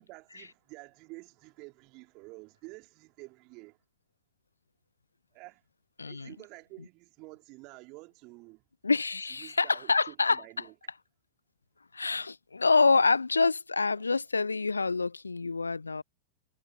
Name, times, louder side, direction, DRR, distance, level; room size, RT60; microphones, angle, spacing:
voice 1, 0.0-3.8 5.3-5.6 6.0-8.6 9.4-10.7 14.0-14.1, right 25 dB, 40° right, 2.9 m, -50 dB
voice 2, 6.0-6.3 8.8-10.4 11.9-16.0, left 4 dB, 80° left, 0.4 m, -26 dB
figure-of-eight pair, 90°, 0 cm